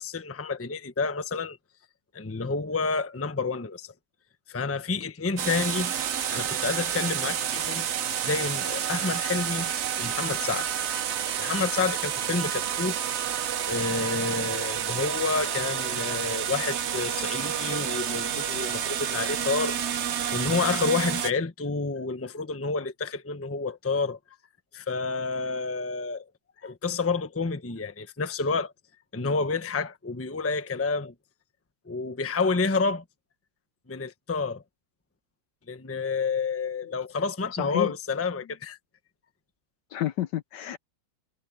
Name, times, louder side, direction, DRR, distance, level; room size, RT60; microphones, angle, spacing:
voice 1, 0.0-1.6 2.1-3.9 4.5-5.9 6.3-7.9 8.2-9.7 10.0-10.7 11.4-13.0 13.7-19.8 20.3-24.2 24.7-26.2 26.6-28.7 29.1-31.1 31.9-33.0 33.9-34.6 35.7-38.8, left 4 dB, 10° left, 0.7 m, -29 dB
sound 1, 5.4-21.3, right 9 dB, 75° right, 0.6 m, -29 dB
voice 2, 37.5-37.9 39.9-40.8, left 12 dB, 70° left, 1.2 m, -30 dB
omnidirectional pair, 2.2 m